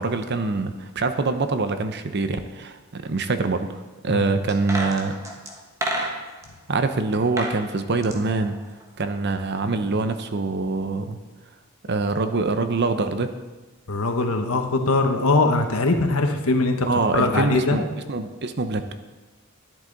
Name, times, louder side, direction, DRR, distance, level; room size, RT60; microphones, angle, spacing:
voice 1, 0.0-5.1 6.7-8.6 9.0-11.2 11.8-13.3 16.8-18.9, right 3 dB, 50° right, 9 dB, 0.7 m, -24 dB
sound 1, 4.5-6.5 7.1-7.6 7.9-9.2 9.5-9.6, right 1 dB, 15° right, 1.2 m, -30 dB
voice 2, 13.9-16.9 17.1-17.8, left 3 dB, 75° left, 5 dB, 1.2 m, -21 dB
11.5 x 10.5 x 4.0 m, 1.2 s
head